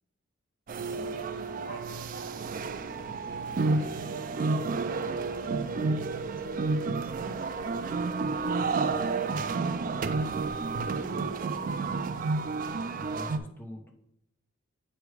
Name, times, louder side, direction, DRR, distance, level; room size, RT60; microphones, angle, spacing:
sound 1, 0.7-13.4, right 4 dB, 40° right, 0.3 m, -30 dB
voice 1, 0.9-4.6 5.0-8.1 8.6-10.3 11.0-12.7, equal, 45° left, 0 dB, 1.5 m, -51 dB
voice 2, 10.6-11.1 12.9-13.9, left 1 dB, 10° left, 2 dB, 0.7 m, -45 dB
7.8 x 3.2 x 4.8 m, 0.77 s
head